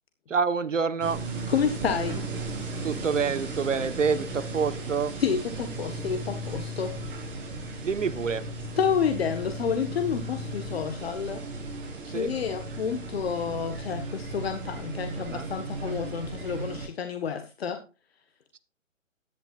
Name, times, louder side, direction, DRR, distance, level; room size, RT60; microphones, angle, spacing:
voice 1, 0.3-1.2 2.8-5.1 7.8-8.5 12.0-12.3 15.2-15.5 18.5-18.6, right 5 dB, 70° right, 14 dB, 1.4 m, -27 dB
sound 1, 1.0-16.9, right 2 dB, 45° right, 7.4 m, -36 dB
voice 2, 1.5-2.3 5.2-7.0 8.8-11.4 12.1-17.8, left 7 dB, 50° left, 7 dB, 1.6 m, -29 dB
14.5 x 11.5 x 2.5 m, 0.32 s
hypercardioid pair, 150°, 39 cm